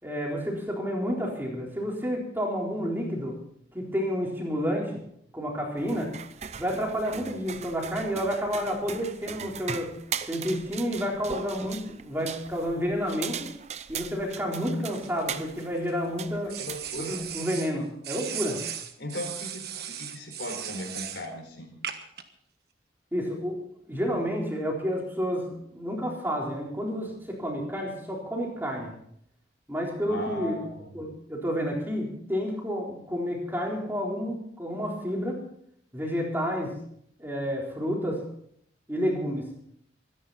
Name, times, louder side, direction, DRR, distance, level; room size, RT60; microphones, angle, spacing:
voice 1, 0.0-3.4 3.7-5.0 5.3-6.1 6.6-9.9 10.3-13.5 13.9-16.6 17.0-18.6 23.1-23.6 23.9-28.9 29.7-30.6 30.9-35.4 35.9-36.8 37.2-38.2 38.9-39.5, equal, 10° right, -1 dB, 3.9 m, -30 dB
sound 1, 5.8-17.4, right 7 dB, 40° right, 0.7 m, -39 dB
sound 2, 14.9-15.9 16.5-17.7 18.0-21.3 21.8-22.2, right 9 dB, 60° right, 1.4 m, -37 dB
voice 2, 16.1-17.2 19.0-21.7 30.1-30.9, left 1 dB, 80° left, 2 dB, 4.6 m, -38 dB
24.0 x 11.0 x 4.2 m, 0.68 s
head